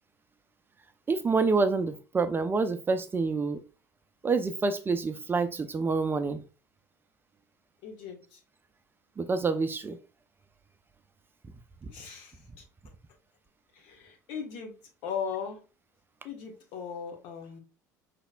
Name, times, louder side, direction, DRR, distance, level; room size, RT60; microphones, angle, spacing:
voice 1, 1.1-3.6 4.2-6.4 9.2-10.0 11.8-11.9, right 4 dB, 20° right, 0.5 m, -27 dB
voice 2, 7.8-8.4 11.9-12.6 13.7-14.7 15.0-15.6 16.2-17.6, left 7 dB, 55° left, 1.3 m, -38 dB
5.6 x 3.4 x 2.3 m
figure-of-eight pair, 65°, 9 cm